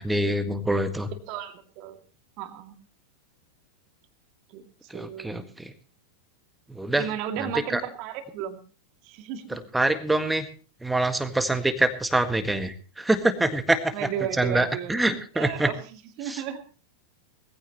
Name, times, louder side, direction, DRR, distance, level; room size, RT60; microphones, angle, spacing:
voice 1, 0.0-1.1 4.9-5.7 6.7-7.1 7.4-7.8 9.5-10.5 10.8-14.1 14.4-15.7 16.2-16.4, right 2 dB, 5° right, 9 dB, 1.7 m, -25 dB
voice 2, 1.3-2.0 2.4-2.7 4.5-4.6 4.9-5.4 7.0-8.6 9.0-9.6 13.9-14.9 15.4-15.8 16.2-16.6, right 9 dB, 45° right, 7 dB, 2.4 m, -34 dB
21.0 x 15.0 x 3.0 m, 0.37 s
figure-of-eight pair, 90°, 0 cm